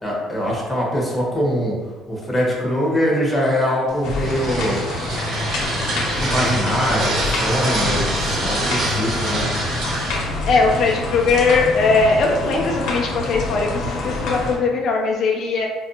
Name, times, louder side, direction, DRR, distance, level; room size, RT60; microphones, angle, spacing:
voice 1, 0.0-1.7 2.1-4.8 5.7-9.5, equal, 5° left, -4 dB, 1.0 m, -23 dB
sound 1, 3.9-11.4, right 2 dB, 50° right, 0.9 m, -26 dB
sound 2, 4.0-14.6, left 2 dB, 70° left, 0.8 m, -26 dB
voice 2, 10.4-15.7, left 4 dB, 50° left, 0 dB, 0.4 m, -19 dB
4.5 x 2.5 x 2.8 m, 1.2 s
cardioid pair, 130°, 0 cm